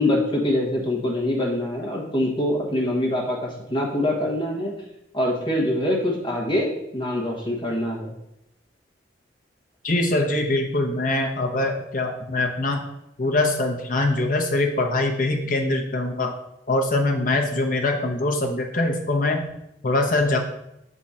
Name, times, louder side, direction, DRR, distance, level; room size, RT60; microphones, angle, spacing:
voice 1, 0.0-4.7 5.1-6.7 6.9-8.1, left 1 dB, 30° left, -2 dB, 1.2 m, -24 dB
voice 2, 9.8-12.8 13.2-16.3 16.7-19.4 19.8-20.4, left 2 dB, 50° left, 2 dB, 0.8 m, -23 dB
6.5 x 3.7 x 4.2 m, 0.82 s
head